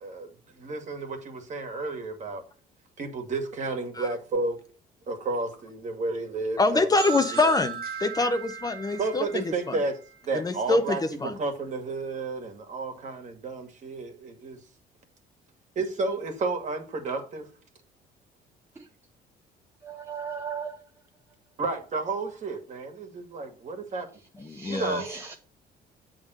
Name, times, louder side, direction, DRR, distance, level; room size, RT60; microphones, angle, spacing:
voice 1, 0.0-2.4 3.0-4.6 5.1-6.9 7.3-7.4 9.0-10.0 10.2-14.6 15.8-17.5 21.6-24.1 24.7-25.1, right 3 dB, 45° right, 2.0 m, -32 dB
voice 2, 6.6-9.8 10.3-11.3 24.4-25.0, left 3 dB, 20° left, 0.7 m, -25 dB
sound 1, 7.0-10.6, right 7 dB, 65° right, 1.4 m, -37 dB
voice 3, 19.8-20.8 24.4-25.3, right 6 dB, 15° right, 0.8 m, -37 dB
7.7 x 3.7 x 6.3 m
cardioid pair, 110°, 17 cm